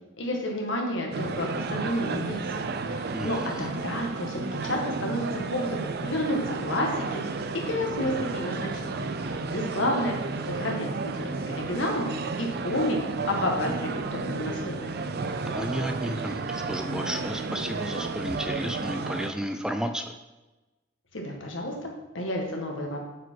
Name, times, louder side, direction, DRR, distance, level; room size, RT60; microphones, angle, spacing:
voice 1, 0.2-2.6 2.9-10.1 10.5-12.1 12.4-13.0 13.3-13.7 13.9-14.9 21.1-23.0, left 1 dB, 75° left, 1 dB, 1.6 m, -31 dB
sound 1, 1.1-19.3, right 3 dB, 55° right, 0.5 m, -32 dB
voice 2, 15.5-20.1, equal, 5° right, 6 dB, 0.3 m, -32 dB
8.1 x 4.7 x 4.6 m, 1.1 s
head